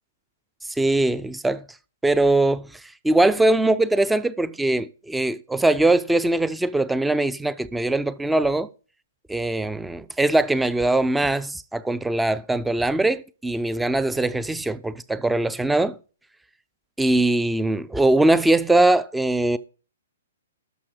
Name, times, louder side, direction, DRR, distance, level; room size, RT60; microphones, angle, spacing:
voice 1, 0.8-1.6 2.0-2.7 3.0-8.7 9.3-16.0 17.0-19.6, right 2 dB, 5° right, 0.5 m, -21 dB
12.5 x 5.9 x 4.7 m
figure-of-eight pair, 120°, 0 cm